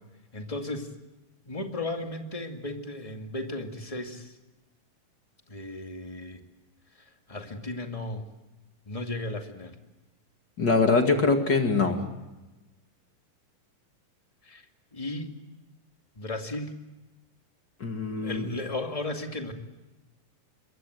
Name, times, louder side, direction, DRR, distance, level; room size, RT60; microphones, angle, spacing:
voice 1, 0.3-0.9 1.4-4.3 5.5-6.4 7.3-8.2 8.9-9.7 14.4-14.6 14.9-15.3 16.1-16.7 18.1-19.5, left 2 dB, 15° left, 4 dB, 1.5 m, -35 dB
voice 2, 10.6-12.0 17.8-18.5, left 4 dB, 35° left, 4 dB, 2.4 m, -23 dB
26.5 x 23.5 x 7.9 m, 1.1 s
omnidirectional pair, 3.9 m